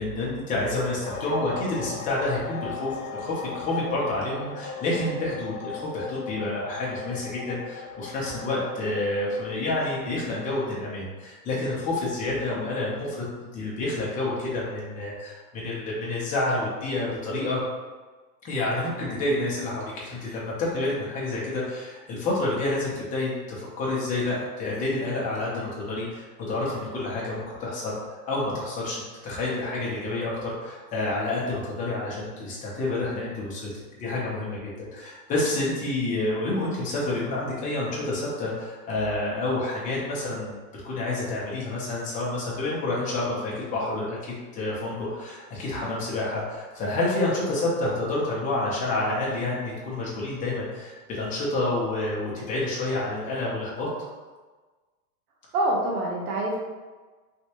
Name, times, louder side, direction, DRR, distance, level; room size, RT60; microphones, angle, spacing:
voice 1, 0.0-13.3 13.5-17.6 18.4-33.7 34.0-53.9, left 2 dB, 15° left, -6 dB, 0.7 m, -29 dB
sound 1, 1.0-10.3, left 5 dB, 60° left, 0.5 m, -38 dB
voice 2, 55.5-56.6, right 1 dB, 70° right, -2 dB, 1.1 m, -25 dB
3.3 x 2.8 x 2.9 m, 1.3 s
supercardioid pair, 150°, 47 cm